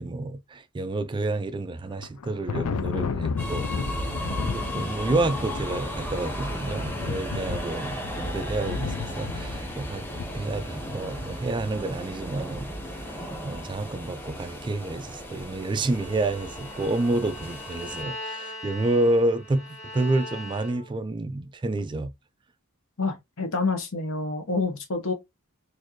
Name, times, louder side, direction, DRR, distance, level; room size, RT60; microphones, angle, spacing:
voice 1, 0.0-3.7 4.4-10.1 10.3-12.7 13.4-22.1, right 2 dB, 20° right, 0.3 m, -29 dB
Thunder, 1.9-11.3, left 5 dB, 85° left, 0.4 m, -33 dB
sound 1, 3.4-18.0, equal, 10° left, 1.0 m, -35 dB
Bowed string instrument, 15.9-21.1, left 1 dB, 35° left, 1.8 m, -40 dB
voice 2, 23.0-25.1, left 3 dB, 65° left, 1.1 m, -28 dB
4.2 x 2.6 x 3.0 m
head